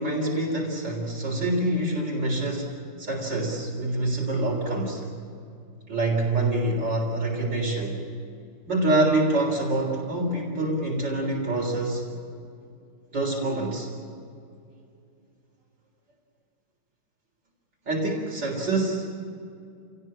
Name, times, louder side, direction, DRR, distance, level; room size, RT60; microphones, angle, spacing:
voice 1, 0.0-5.1 5.9-8.0 8.7-12.0 13.1-13.9 17.9-19.1, right 2 dB, 65° right, -3 dB, 4.5 m, -26 dB
29.5 x 18.0 x 8.7 m, 2.4 s
omnidirectional pair, 2.1 m